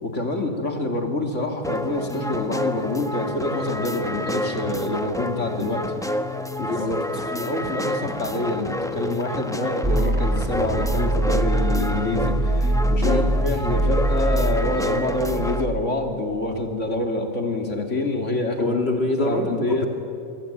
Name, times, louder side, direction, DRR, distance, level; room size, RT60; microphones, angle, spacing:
voice 1, 0.0-6.1 6.7-6.9 7.2-18.7 19.2-19.9, left 2 dB, 75° left, 3 dB, 3.4 m, -26 dB
sound 1, 1.6-15.7, left 1 dB, 5° left, 1.1 m, -29 dB
voice 2, 6.6-7.2 13.0-13.3 18.6-19.9, left 2 dB, 55° left, 2 dB, 2.3 m, -25 dB
sound 2, 9.8-15.8, right 1 dB, 25° right, 2.7 m, -23 dB
26.5 x 24.0 x 9.3 m, 2.6 s
omnidirectional pair, 1.3 m